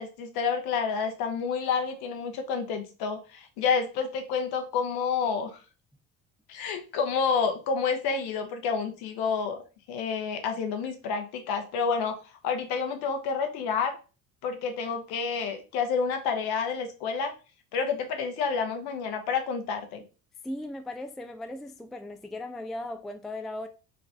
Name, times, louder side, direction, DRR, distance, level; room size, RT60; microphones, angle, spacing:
voice 1, 0.0-5.6 6.5-9.6 9.9-12.2 12.4-14.0 14.4-17.3 17.7-20.0, left 5 dB, 65° left, 1.0 m, -29 dB
voice 2, 20.4-23.7, left 1 dB, ahead, 0.3 m, -37 dB
4.0 x 2.5 x 3.3 m
hypercardioid pair, 60°, 41 cm